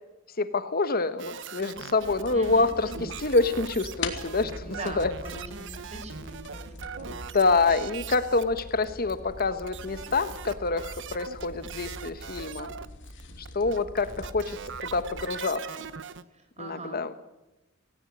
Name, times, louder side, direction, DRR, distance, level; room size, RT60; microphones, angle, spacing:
voice 1, 0.4-2.9 3.2-5.1 7.1-12.7 13.4-15.6 16.6-17.1, left 3 dB, 45° left, 11 dB, 1.3 m, -27 dB
sound 1, 1.2-8.8 9.1-13.2 13.5-16.2, right 6 dB, 60° right, 1.1 m, -41 dB
sound 2, 2.0-15.3, left 2 dB, 65° left, 3.0 m, -42 dB
voice 2, 2.3-3.1 4.6-7.2 16.3-17.2, right 2 dB, 35° right, 7 dB, 4.6 m, -42 dB
18.0 x 18.0 x 9.7 m, 0.99 s
head